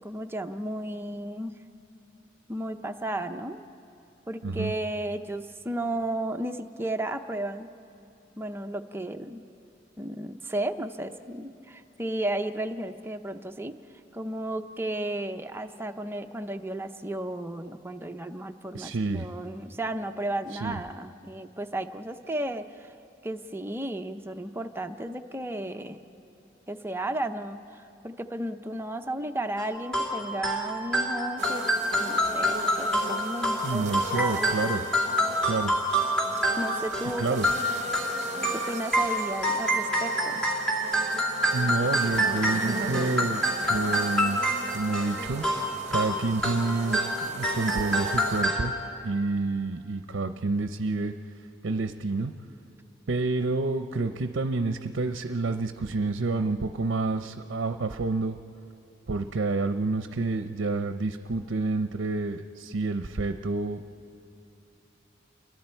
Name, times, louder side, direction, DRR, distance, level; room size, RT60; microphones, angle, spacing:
voice 1, 0.0-1.6 2.5-3.7 4.3-7.7 8.4-9.4 10.0-13.8 14.1-22.9 23.2-26.0 26.7-31.7 32.0-34.5 34.8-34.9 36.6-37.4 38.5-40.4, right 1 dB, 10° right, 6 dB, 0.6 m, -34 dB
voice 2, 18.7-19.3 20.5-20.8 33.6-34.8 35.4-35.7 37.2-37.5 41.5-44.4 44.7-48.7 49.0-51.1 51.6-52.3 53.1-58.4 59.1-63.8, right 3 dB, 65° right, 8 dB, 0.6 m, -29 dB
sound 1, 29.6-48.7, equal, 5° left, 2.7 m, -27 dB
sound 2, 31.4-48.4, right 2 dB, 40° right, 1.1 m, -38 dB
29.0 x 23.0 x 4.5 m, 2.8 s
head